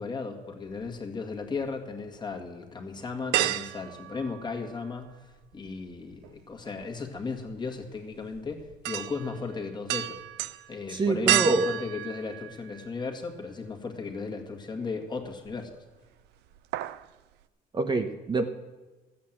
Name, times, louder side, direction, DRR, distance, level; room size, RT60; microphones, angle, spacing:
voice 1, 0.0-10.2 10.7-15.8, left 4 dB, 25° left, 2 dB, 2.0 m, -36 dB
sound 1, 0.7-1.7 2.1-2.2 3.3-5.1 5.3-13.2 13.7-13.8 15.2-15.8 16.1-16.3 16.5-17.1 17.4-17.5, right 14 dB, 85° right, 0.5 m, -32 dB
voice 2, 10.9-11.7 17.7-18.4, right 3 dB, 25° right, 7 dB, 0.8 m, -25 dB
13.0 x 8.6 x 7.4 m, 1.2 s
cardioid pair, 110°, 17 cm